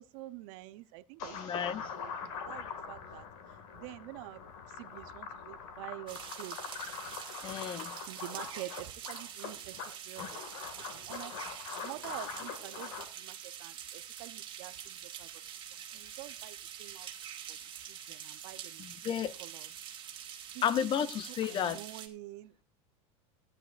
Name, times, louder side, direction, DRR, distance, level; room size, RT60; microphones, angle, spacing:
voice 1, 0.0-1.7 2.0-3.3 3.7-4.4 4.7-6.8 8.1-11.5 11.8-15.3 15.6-17.1 17.5-19.7 20.5-20.9 21.3-22.6, right 17 dB, 60° right, 0.7 m, -48 dB
sound 1, 1.2-13.0, left 6 dB, 65° left, 2.1 m, -43 dB
voice 2, 1.4-1.8 7.4-7.9 18.8-19.3 20.6-21.8, left 9 dB, 30° left, 0.5 m, -32 dB
sound 2, 6.1-22.1, right 9 dB, 30° right, 2.1 m, -45 dB
16.5 x 9.9 x 2.5 m
supercardioid pair, 135°, 18 cm